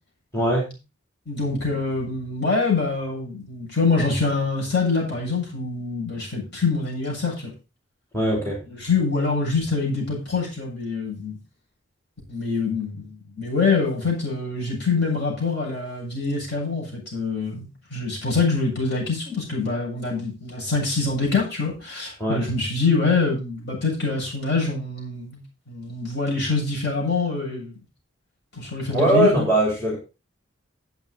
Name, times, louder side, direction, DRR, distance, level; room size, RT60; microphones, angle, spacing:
voice 1, 0.3-0.7 8.1-8.6 22.2-22.4 28.9-30.0, right 1 dB, 15° left, -2 dB, 3.3 m, -20 dB
voice 2, 1.3-7.5 8.7-11.4 12.3-27.7 28.6-29.3, left 4 dB, 55° left, -3 dB, 7.3 m, -25 dB
12.0 x 8.1 x 4.1 m, 0.29 s
head